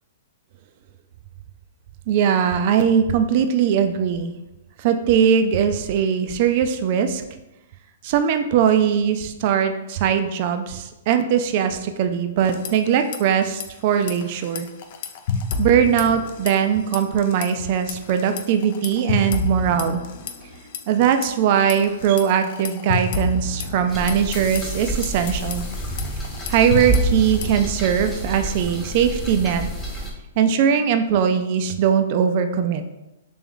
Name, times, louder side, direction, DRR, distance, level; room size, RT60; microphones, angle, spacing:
voice 1, 2.1-4.3 4.8-7.2 8.0-14.7 15.6-20.0 20.9-25.7 26.5-29.6 30.4-32.8, right 8 dB, 45° right, 8 dB, 0.3 m, -20 dB
sound 1, 12.4-13.2 13.4-13.6 14.0-16.7 16.9-17.5 17.9-21.3 21.7-27.7, left 4 dB, 55° left, 0.4 m, -29 dB
sound 2, 23.9-30.1, right 1 dB, 5° left, 0.9 m, -28 dB
3.3 x 3.0 x 3.7 m, 0.95 s
hypercardioid pair, 140°, 0 cm